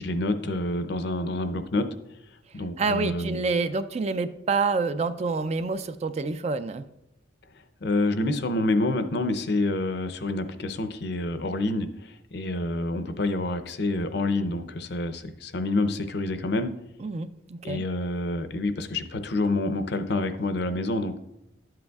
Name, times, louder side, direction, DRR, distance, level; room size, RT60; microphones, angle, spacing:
voice 1, 0.0-1.9 2.5-3.4 7.8-16.7 17.6-21.2, left 2 dB, 55° left, 9 dB, 0.6 m, -27 dB
voice 2, 2.8-6.9 17.0-17.8, right 4 dB, 35° right, 11 dB, 0.3 m, -27 dB
11.5 x 7.7 x 2.3 m, 0.85 s
head